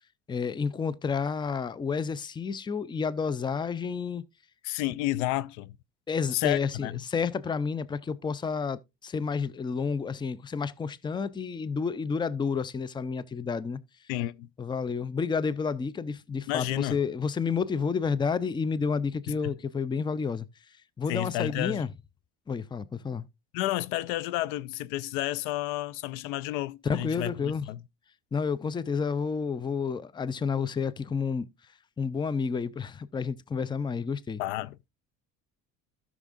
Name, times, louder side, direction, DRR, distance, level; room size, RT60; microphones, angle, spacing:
voice 1, 0.3-4.2 6.1-13.8 14.6-20.5 21.0-21.9 22.5-23.3 26.8-27.6 28.3-31.5 32.0-34.4, left 5 dB, 15° left, 0.5 m, -30 dB
voice 2, 4.6-5.8 6.3-6.9 14.1-14.5 16.5-17.0 19.3-19.6 21.1-21.9 23.5-27.8 34.4-34.8, left 16 dB, 75° left, 0.5 m, -31 dB
13.0 x 6.2 x 2.5 m
supercardioid pair, 85°, 36 cm